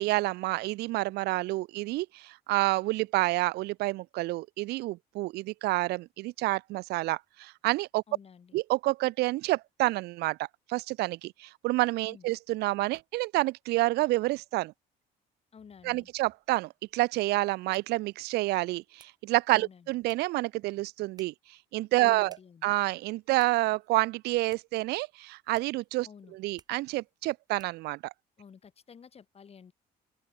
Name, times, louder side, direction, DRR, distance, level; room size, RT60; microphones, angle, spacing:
voice 1, 0.0-8.0 8.5-10.4 10.7-14.7 15.8-21.3 21.7-22.4 22.6-28.1, right 19 dB, 75° right, 0.4 m, -29 dB
voice 2, 8.1-8.6 12.1-12.3 15.5-16.1 19.5-19.9 22.0-22.7 26.0-26.4 28.4-29.7, left 6 dB, 35° left, 4.4 m, -52 dB
sound 1, 16.4-28.0, right 4 dB, 25° right, 4.1 m, -64 dB
open air
cardioid pair, 110°, 17 cm